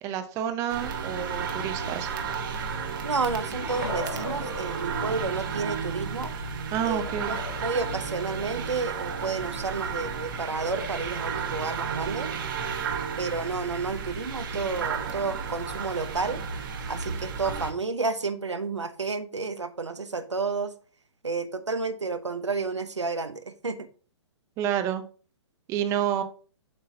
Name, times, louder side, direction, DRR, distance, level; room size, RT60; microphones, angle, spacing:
voice 1, 0.0-2.1 6.7-7.3 24.6-25.0 25.7-26.2, right 10 dB, 20° right, 8 dB, 0.7 m, -29 dB
sound 1, 0.7-17.7, right 5 dB, 45° right, 1.4 m, -33 dB
voice 2, 3.0-6.3 6.8-12.3 13.2-16.4 16.9-20.7 21.2-23.9, right 4 dB, 75° right, 9 dB, 1.0 m, -31 dB
sound 2, 3.3-5.7 7.2-9.0 10.4-10.9, left 3 dB, 75° left, 2.3 m, -40 dB
7.7 x 6.3 x 2.8 m, 0.39 s
figure-of-eight pair, 125°, 15 cm